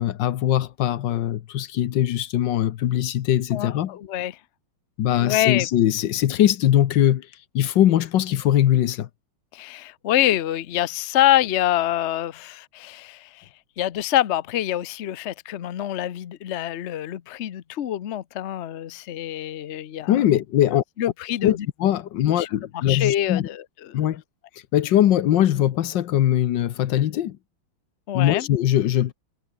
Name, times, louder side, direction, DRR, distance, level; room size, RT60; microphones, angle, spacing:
voice 1, 0.0-3.9 5.0-7.3 7.5-9.1 20.1-20.8 21.4-23.5 23.9-24.2 24.7-27.4 28.1-29.1, left 12 dB, 65° left, 1.4 m, -21 dB
voice 2, 3.5-4.4 5.2-5.7 9.5-13.4 13.8-20.1 20.7-21.7 22.4-22.5 22.7-24.0 28.1-28.5, left 13 dB, 85° left, 0.6 m, -25 dB
omnidirectional pair, 2.3 m